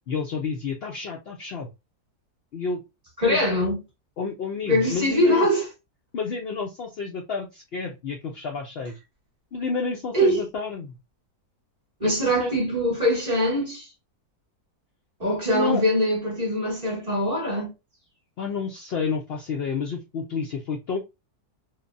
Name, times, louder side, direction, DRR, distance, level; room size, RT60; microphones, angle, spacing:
voice 1, 0.1-1.7 2.5-2.8 3.2-3.4 4.2-5.5 6.1-9.0 9.5-10.9 12.0-12.1 12.4-12.5 15.5-15.8 18.4-21.0, left 5 dB, 85° left, 0.5 m, -30 dB
voice 2, 3.2-3.8 4.7-5.7 10.1-10.4 12.0-13.9 15.2-17.7, equal, 30° right, 1.0 m, -22 dB
3.1 x 2.1 x 2.5 m
omnidirectional pair, 1.6 m